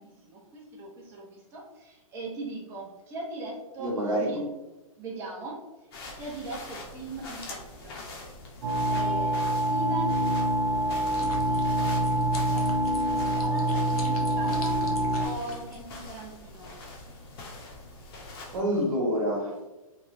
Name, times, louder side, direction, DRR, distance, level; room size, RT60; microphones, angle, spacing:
voice 1, 0.0-4.5 5.0-5.6 6.1-8.1 8.9-10.2 11.2-14.9 15.2-16.7, right 2 dB, 15° right, -4 dB, 0.5 m, -40 dB
voice 2, 3.8-4.4 18.5-19.7, equal, 65° right, -2 dB, 1.0 m, -27 dB
sound 1, 5.9-18.6, left 2 dB, 40° left, 0.6 m, -44 dB
sound 2, 8.6-15.3, right 1 dB, 80° right, 0.6 m, -26 dB
sound 3, 11.1-16.2, left 3 dB, 90° left, 0.6 m, -44 dB
2.9 x 2.0 x 2.5 m, 1.0 s
hypercardioid pair, 150°, 19 cm